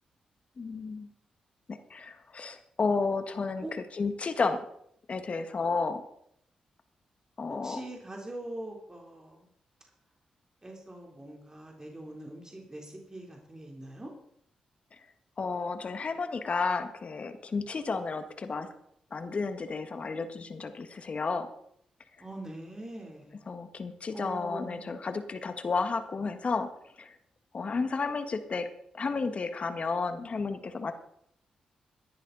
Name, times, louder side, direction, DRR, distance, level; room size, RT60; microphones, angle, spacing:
voice 1, 0.6-1.1 1.7-4.6 5.1-6.0 7.4-7.8 15.4-18.7 19.1-21.5 23.5-26.7 27.0-27.2 27.5-28.7 28.9-30.9, left 4 dB, 50° left, 8 dB, 1.7 m, -32 dB
voice 2, 7.5-9.4 10.6-14.1 22.2-23.4 24.1-24.9, right 1 dB, 25° right, -1 dB, 3.7 m, -42 dB
17.5 x 10.5 x 4.2 m, 0.71 s
supercardioid pair, 45°, 3 cm